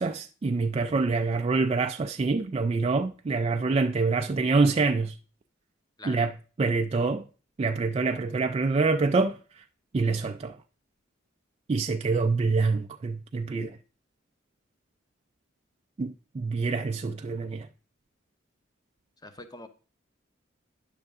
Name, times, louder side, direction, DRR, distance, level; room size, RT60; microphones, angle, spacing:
voice 1, 0.0-5.1 6.0-7.2 7.6-9.4 9.9-10.6 11.7-13.8 16.0-17.7, right 4 dB, 30° right, 0.3 m, -26 dB
voice 2, 19.2-19.7, left 2 dB, 20° left, 0.8 m, -43 dB
9.8 x 6.6 x 3.5 m
head